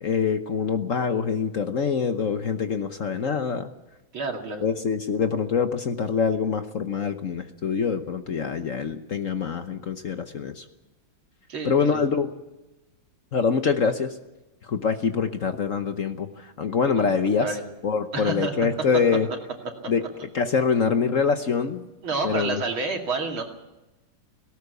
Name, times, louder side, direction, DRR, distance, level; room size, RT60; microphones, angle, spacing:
voice 1, 0.0-3.7 4.6-10.6 11.6-12.3 13.3-14.2 14.7-17.6 17.8-19.3 19.9-20.0 20.3-21.9 22.2-22.6, left 6 dB, 50° left, 8 dB, 1.1 m, -25 dB
voice 2, 4.1-4.6 11.5-12.0 17.0-17.6 18.1-18.5 19.8-19.9 20.7-20.8 22.0-23.4, right 3 dB, 85° right, 2 dB, 3.4 m, -30 dB
18.0 x 17.5 x 8.2 m, 1.0 s
omnidirectional pair, 2.2 m